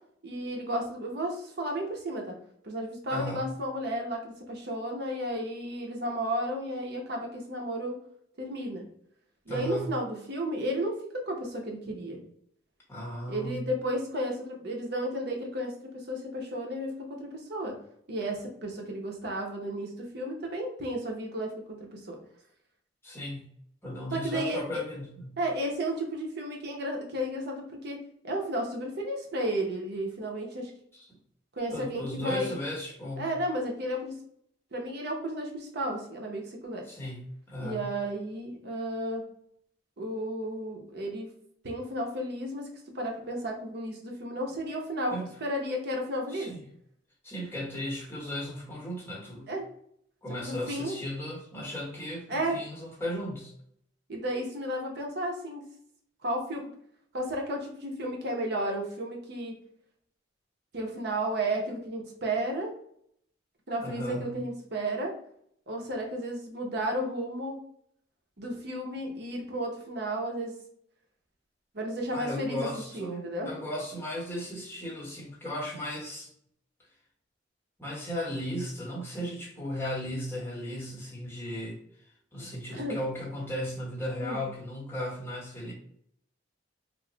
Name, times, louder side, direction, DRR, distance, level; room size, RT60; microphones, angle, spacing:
voice 1, 0.2-2.4 2.6-8.0 8.4-8.8 9.5-12.2 13.3-17.8 18.1-22.2 24.1-24.7 25.4-28.0 28.2-30.7 31.5-32.6 33.2-34.1 34.7-36.8 37.6-39.2 40.0-41.3 41.6-42.7 42.9-46.5 49.5-49.7 50.4-50.9 52.3-52.6 54.1-55.6 56.2-56.6 57.1-59.6 60.7-62.7 63.7-65.1 65.7-67.6 68.4-70.5 71.7-72.7 72.9-73.5 82.4-83.0 84.2-84.4, right 1 dB, 60° right, 1 dB, 0.8 m, -33 dB
voice 2, 3.1-3.4 9.5-9.9 12.9-13.6 23.0-23.5 23.8-25.4 30.9-31.1 31.7-33.3 36.9-37.2 37.5-37.8 45.1-45.3 46.3-46.6 47.2-49.5 50.2-53.5 63.8-64.3 72.1-76.3 77.8-81.8 82.3-85.7, left 1 dB, 15° left, -4 dB, 1.0 m, -36 dB
3.1 x 2.0 x 3.8 m, 0.68 s
head